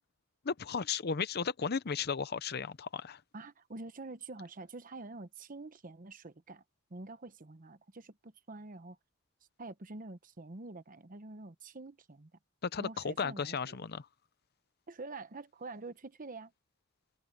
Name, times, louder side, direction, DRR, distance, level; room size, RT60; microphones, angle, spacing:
voice 1, 0.4-3.2 12.6-14.1, left 5 dB, 50° left, 0.7 m, -35 dB
voice 2, 3.3-6.6 6.9-9.0 9.6-12.3 12.8-13.8 14.9-16.5, right 3 dB, 45° right, 1.0 m, -46 dB
head